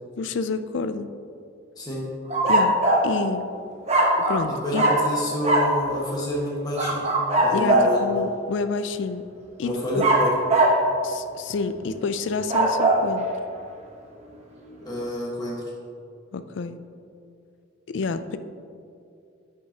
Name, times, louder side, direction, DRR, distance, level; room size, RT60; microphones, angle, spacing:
voice 1, 0.2-1.1 2.5-3.5 4.2-4.8 7.5-9.3 9.6-10.0 11.0-13.3 16.3-16.8 17.9-18.4, left 4 dB, 60° left, 11 dB, 0.4 m, -29 dB
sound 1, 2.3-3.1 3.9-4.5 4.7-5.1 5.4-5.7 6.7-8.0 10.0-10.8 12.3-13.0, right 1 dB, 30° right, 1.0 m, -20 dB
voice 2, 4.5-7.1 7.4-8.0 9.6-10.3 14.8-15.6, equal, 20° left, -5 dB, 1.4 m, -28 dB
10.0 x 6.1 x 2.9 m, 2.5 s
head